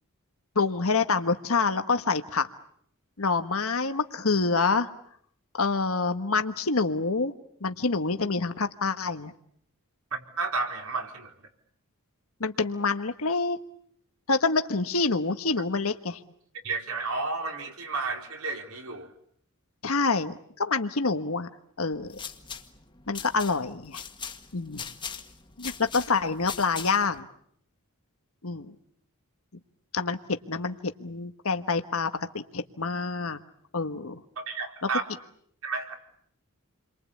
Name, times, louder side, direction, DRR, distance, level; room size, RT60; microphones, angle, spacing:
voice 1, 0.5-2.5 3.2-4.9 5.6-7.3 7.6-9.3 12.4-13.6 14.3-16.2 19.8-21.5 21.8-22.2 23.1-24.0 24.5-24.9 25.6-27.3 28.4-28.7 29.9-30.2 30.5-33.4 33.7-34.2, left 4 dB, 75° left, 8 dB, 1.4 m, -27 dB
voice 2, 10.1-11.3 16.6-19.1 34.4-35.0 35.6-36.0, right 3 dB, 80° right, 3 dB, 4.4 m, -32 dB
sound 1, 21.9-27.2, left 6 dB, 20° left, 1.8 m, -41 dB
29.5 x 23.5 x 8.5 m, 0.68 s
head